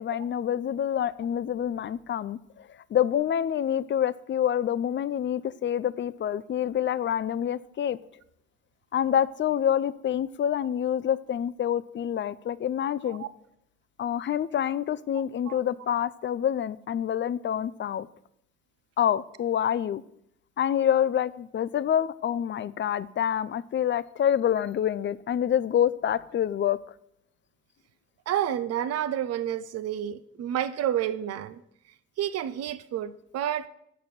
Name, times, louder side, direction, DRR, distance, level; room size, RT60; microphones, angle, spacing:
voice 1, 0.0-8.0 8.9-13.2 14.0-18.1 19.0-20.0 20.6-26.8, left 9 dB, 40° left, 0.4 m, -27 dB
voice 2, 28.3-31.6 32.2-33.7, right 10 dB, 60° right, 0.5 m, -30 dB
6.6 x 5.2 x 5.7 m
hypercardioid pair, 40°, 29 cm